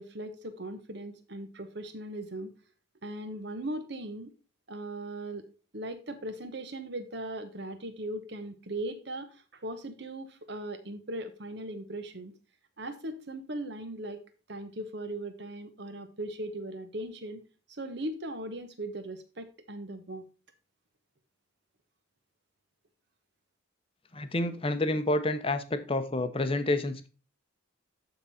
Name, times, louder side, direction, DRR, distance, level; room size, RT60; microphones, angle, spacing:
voice 1, 0.0-2.5 3.0-4.3 4.7-5.4 5.7-12.3 12.8-14.2 14.5-17.4 17.7-20.3, right 1 dB, 55° right, 8 dB, 1.1 m, -38 dB
voice 2, 24.1-27.1, left 1 dB, 25° left, 9 dB, 0.7 m, -29 dB
12.0 x 3.9 x 4.2 m, 0.35 s
head